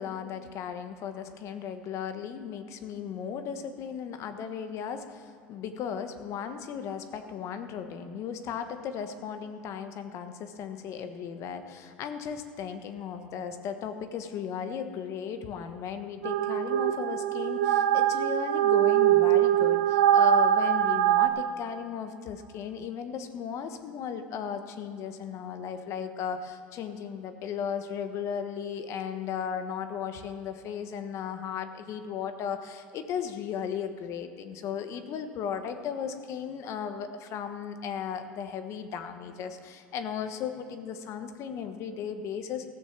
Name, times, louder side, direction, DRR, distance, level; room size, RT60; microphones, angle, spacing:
voice 1, 0.0-42.7, left 7 dB, 55° left, 8 dB, 1.2 m, -36 dB
sound 1, 16.2-21.3, right 11 dB, 85° right, 0.9 m, -23 dB
15.0 x 6.5 x 7.3 m, 2.4 s
hypercardioid pair, 85°, 6 cm